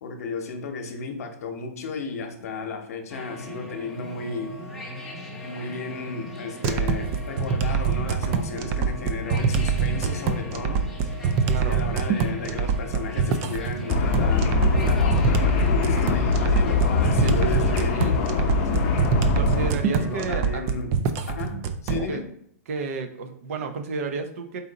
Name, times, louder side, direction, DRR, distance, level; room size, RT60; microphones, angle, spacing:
voice 1, 0.0-4.6 5.4-10.9 11.6-18.9 19.9-21.0 21.3-22.2, left 4 dB, 70° left, 5 dB, 0.9 m, -34 dB
sound 1, 3.1-20.4, left 1 dB, ahead, 0.8 m, -39 dB
sound 2, 6.6-22.1, right 5 dB, 30° right, 0.3 m, -25 dB
voice 2, 11.5-11.8 17.2-18.2 19.3-20.6 22.1-22.2 22.7-24.6, right 4 dB, 60° right, 6 dB, 0.7 m, -32 dB
sound 3, 13.9-19.7, left 5 dB, 40° left, 0.7 m, -23 dB
4.1 x 2.5 x 3.9 m, 0.69 s
hypercardioid pair, 150°, 8 cm